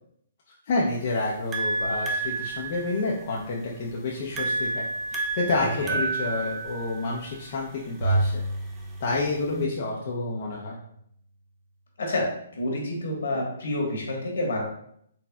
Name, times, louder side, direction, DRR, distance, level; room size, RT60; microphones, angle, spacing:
voice 1, 0.7-4.8 5.1-8.4 9.0-10.8, left 3 dB, 50° left, -4 dB, 0.6 m, -29 dB
sound 1, 0.9-9.6, right 3 dB, 15° right, 0.5 m, -32 dB
Bowed string instrument, 8.0-10.4, right 2 dB, 90° right, 0.4 m, -29 dB
voice 2, 12.0-14.6, left 1 dB, 75° left, -1 dB, 1.3 m, -29 dB
4.2 x 3.3 x 2.3 m, 0.70 s
hypercardioid pair, 145°, 0 cm